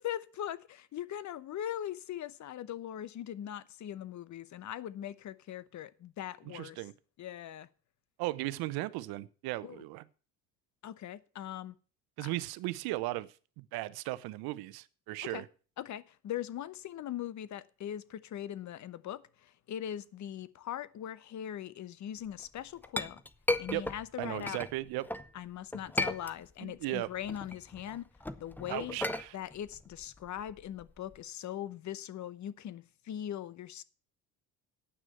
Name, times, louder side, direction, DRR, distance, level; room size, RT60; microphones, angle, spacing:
voice 1, 0.0-6.8 7.2-7.7 9.6-9.8 10.8-11.7 12.2-12.3 15.3-15.4 15.8-23.2 23.6-24.6 25.3-28.1 28.4-29.0 29.3-33.8, left 11 dB, 50° left, 0.9 m, -40 dB
voice 2, 6.4-6.9 8.2-10.1 12.2-13.3 13.6-15.5 23.7-23.9 24.2-25.1 26.6-27.1 28.7-29.4, right 18 dB, 75° right, 0.8 m, -36 dB
Chink clink, 22.4-25.3 25.7-26.8 27.1-31.2, left 2 dB, 5° left, 0.7 m, -36 dB
9.4 x 6.1 x 7.9 m
supercardioid pair, 90°, 37 cm